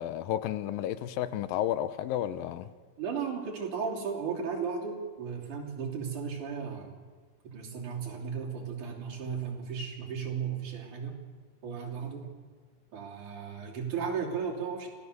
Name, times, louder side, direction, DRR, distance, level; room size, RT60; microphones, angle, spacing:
voice 1, 0.0-2.7, left 11 dB, 85° left, 13 dB, 2.6 m, -32 dB
voice 2, 3.0-7.0 7.4-11.2 11.6-12.3 12.9-14.9, right 6 dB, 60° right, -1 dB, 4.5 m, -35 dB
25.5 x 17.0 x 6.8 m, 1.5 s
omnidirectional pair, 4.0 m